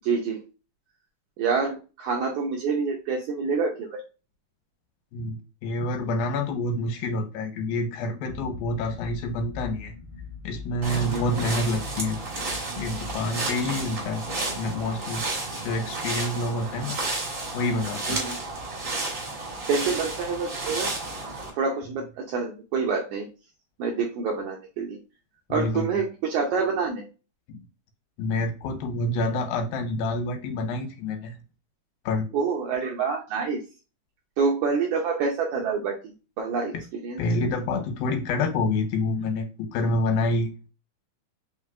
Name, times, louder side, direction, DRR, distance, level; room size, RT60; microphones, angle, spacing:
voice 1, 0.0-0.4 1.4-4.0 11.1-11.2 18.1-18.4 19.7-20.9 21.5-23.3 23.8-25.0 25.5-27.1 32.3-33.6 34.4-36.7 37.0-37.2, right 5 dB, 80° right, 0 dB, 1.7 m, -27 dB
voice 2, 5.1-9.9 10.4-12.2 12.8-14.2 14.6-15.2 15.6-17.0 17.5-18.2 25.5-25.9 27.5-27.6 28.2-31.4 32.1-32.3 37.2-40.5, left 2 dB, 85° left, 6 dB, 2.6 m, -27 dB
sound 1, 8.3-15.4, left 4 dB, 60° right, 1.1 m, -42 dB
sound 2, 10.8-21.5, right 2 dB, 40° right, 1.1 m, -32 dB
5.3 x 3.3 x 2.4 m, 0.32 s
omnidirectional pair, 4.1 m